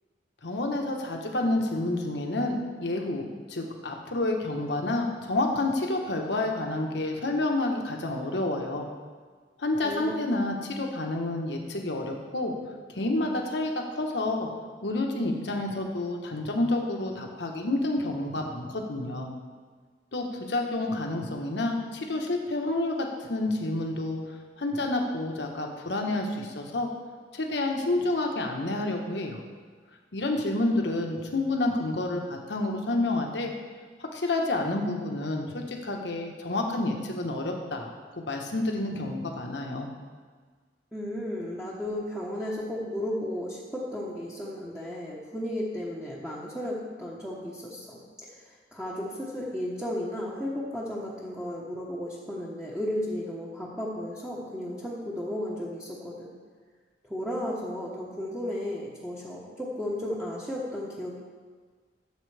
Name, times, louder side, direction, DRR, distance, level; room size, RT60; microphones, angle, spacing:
voice 1, 0.4-8.9 9.6-12.5 12.9-14.5 14.8-19.3 20.1-26.9 27.3-29.4 30.1-33.5 34.1-39.9, left 2 dB, 85° left, 1 dB, 1.3 m, -29 dB
voice 2, 9.8-10.2 40.9-48.0 48.3-56.3 57.1-61.2, left 1 dB, 5° right, -7 dB, 1.1 m, -34 dB
13.0 x 7.5 x 3.4 m, 1.6 s
head